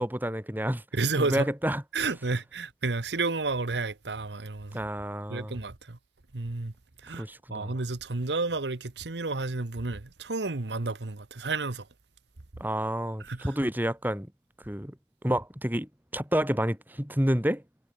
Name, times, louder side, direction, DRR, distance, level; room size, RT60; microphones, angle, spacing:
voice 1, 0.0-0.8 1.2-1.8 4.7-5.6 7.2-7.7 12.6-14.3 14.7-14.9 15.2-17.6, equal, 10° right, 3.0 m, -29 dB
voice 2, 0.9-1.5 1.9-4.9 5.3-6.0 6.3-6.7 7.0-7.2 7.5-11.9 13.2-13.5, right 3 dB, 80° right, 1.2 m, -31 dB
head